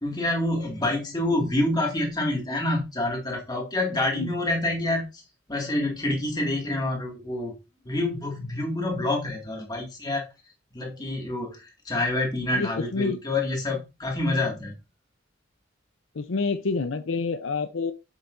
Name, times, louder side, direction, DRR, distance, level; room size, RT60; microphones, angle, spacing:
voice 1, 0.0-5.2 5.5-7.6 7.9-10.3 10.7-14.8, left 2 dB, 20° left, 2.1 m, -27 dB
voice 2, 12.5-13.2 16.1-17.9, left 4 dB, 80° left, 0.6 m, -28 dB
7.3 x 6.9 x 2.6 m
head